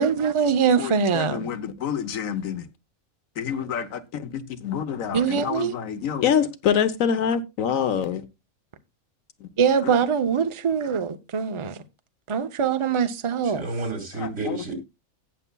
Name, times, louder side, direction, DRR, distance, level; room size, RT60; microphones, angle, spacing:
voice 1, 0.0-1.5 5.1-5.7 9.6-11.8 12.3-13.6, right 6 dB, 30° right, 0.6 m, -23 dB
voice 2, 0.8-2.7 3.4-8.3 9.4-9.5 9.8-9.9 14.2-14.6, left 8 dB, 90° left, 1.3 m, -26 dB
voice 3, 13.4-14.8, right 3 dB, 80° right, 3.3 m, -31 dB
17.5 x 6.8 x 2.3 m
omnidirectional pair, 1.4 m